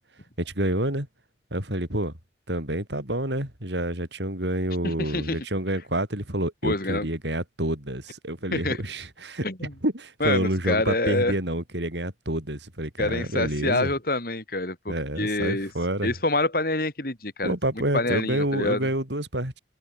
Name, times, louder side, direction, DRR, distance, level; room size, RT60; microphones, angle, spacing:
voice 1, 0.4-1.1 1.5-2.1 2.5-9.5 9.8-13.9 14.9-16.1 17.4-19.6, right 1 dB, 85° right, 7.9 m, -28 dB
voice 2, 4.8-5.4 6.6-7.1 8.5-8.8 9.4-9.7 10.2-11.3 13.0-15.7 16.0-17.5 17.9-18.9, left 2 dB, 55° left, 4.7 m, -26 dB
open air
head